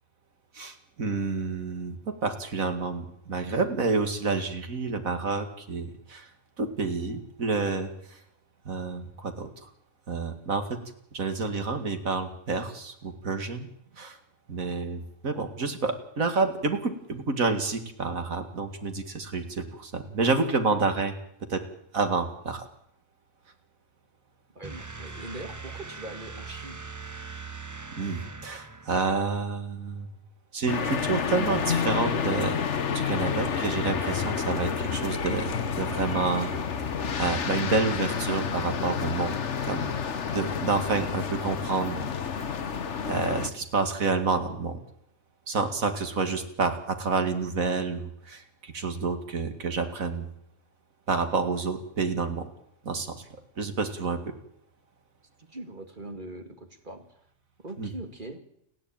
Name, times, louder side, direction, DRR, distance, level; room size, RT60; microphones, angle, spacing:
voice 1, 0.5-6.3 6.6-8.2 8.7-9.7 10.1-10.8 11.1-13.7 14.0-14.2 14.5-21.1 21.5-21.6 21.9-22.7 27.9-30.1 30.5-32.6 32.9-36.5 37.2-39.9 40.3-42.0 42.4-42.5 43.0-44.8 45.5-50.3 51.1-52.5 52.8-53.2 53.6-54.2 57.8-57.9, right 4 dB, 90° right, 7 dB, 2.6 m, -29 dB
voice 2, 24.5-26.8 55.4-57.2 57.6-58.4, right 2 dB, 35° right, 6 dB, 2.6 m, -41 dB
sound 1, 24.6-29.3, right 4 dB, 15° right, 0.7 m, -41 dB
sound 2, 30.7-43.5, left 6 dB, 60° left, 1.5 m, -29 dB
29.5 x 10.5 x 8.9 m, 0.72 s
omnidirectional pair, 1.4 m